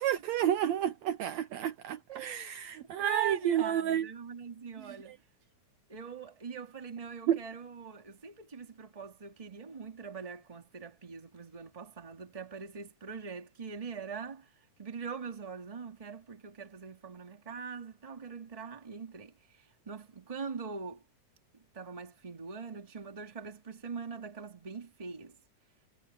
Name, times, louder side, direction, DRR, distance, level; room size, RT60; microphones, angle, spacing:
voice 1, 0.0-4.1 4.8-5.2 7.3-7.4, right 10 dB, 75° right, 1.8 m, -31 dB
voice 2, 2.1-2.6 3.0-5.1 5.9-14.5 14.8-19.3 19.8-21.0 21.7-25.3, right 6 dB, 15° right, 1.5 m, -42 dB
omnidirectional pair, 3.6 m